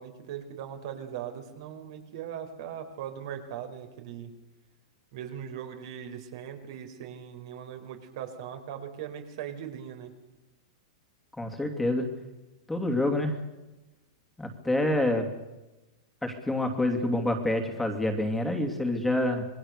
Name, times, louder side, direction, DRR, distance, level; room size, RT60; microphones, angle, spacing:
voice 1, 0.0-4.3 5.1-10.1, right 9 dB, 60° right, 5 dB, 4.4 m, -39 dB
voice 2, 11.4-12.1 12.7-13.3 14.4-15.3 16.2-19.4, left 1 dB, 5° left, 4 dB, 2.8 m, -27 dB
27.0 x 21.0 x 6.7 m, 1.0 s
supercardioid pair, 145°, 3 cm